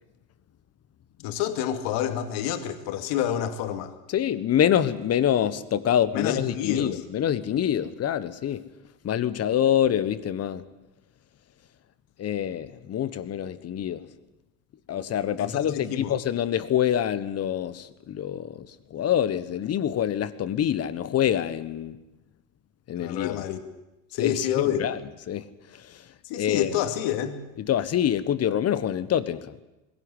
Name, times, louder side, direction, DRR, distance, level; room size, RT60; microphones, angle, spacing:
voice 1, 1.2-3.9 6.1-7.0 15.4-16.1 23.0-23.6 24.1-24.8 26.2-27.4, left 10 dB, 60° left, 2.5 m, -28 dB
voice 2, 4.1-8.6 9.0-10.6 12.2-14.0 14.9-22.0 22.9-23.4 24.2-25.0 25.3-25.4 25.7-26.1 26.4-26.7 27.6-29.6, left 10 dB, 30° left, 1.3 m, -26 dB
21.5 x 16.5 x 10.0 m
supercardioid pair, 125°, 47 cm